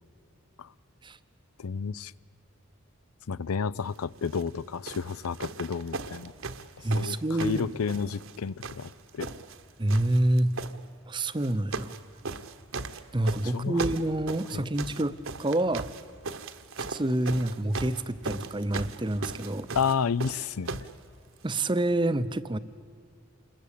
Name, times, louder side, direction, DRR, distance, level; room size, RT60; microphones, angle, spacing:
voice 1, 1.6-2.1 3.3-6.3 6.9-9.3 13.4-13.8 14.5-14.6 19.7-20.8, left 6 dB, 85° left, 19 dB, 0.5 m, -31 dB
sound 1, 4.2-4.5 4.9-8.4 8.6-9.6 9.9-10.7 11.4-12.0 12.2-20.9 21.8-21.9, right 3 dB, 65° right, 1.2 m, -37 dB
voice 2, 6.8-7.7 9.8-10.5 11.1-11.9 13.1-15.9 16.8-19.7 21.4-22.6, right 1 dB, 20° right, 13 dB, 0.7 m, -27 dB
28.0 x 21.5 x 8.4 m, 2.4 s
head